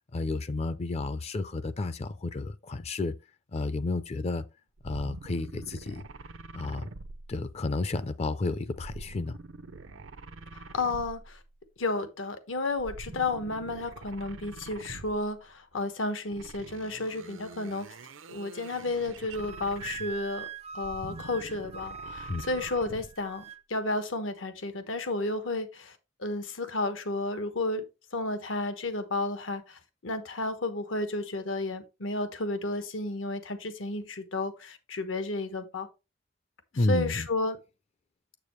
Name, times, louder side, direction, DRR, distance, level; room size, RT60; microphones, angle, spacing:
voice 1, 0.1-3.2 3.5-4.5 4.8-6.0 6.5-6.9 7.3-9.4 22.3-22.4 36.7-37.3, left 3 dB, 35° left, 0.4 m, -31 dB
sound 1, 4.8-7.8 8.8-11.5 12.7-15.4 16.3-20.3 20.7-23.2, right 3 dB, 85° right, 0.7 m, -45 dB
voice 2, 10.5-11.4 11.8-17.9 18.3-20.5 20.7-27.8 28.1-35.9 36.9-37.6, left 2 dB, 85° left, 1.2 m, -32 dB
Wind instrument woodwind instrument, 19.3-23.6, right 6 dB, 30° right, 0.4 m, -42 dB
7.3 x 6.9 x 3.1 m
head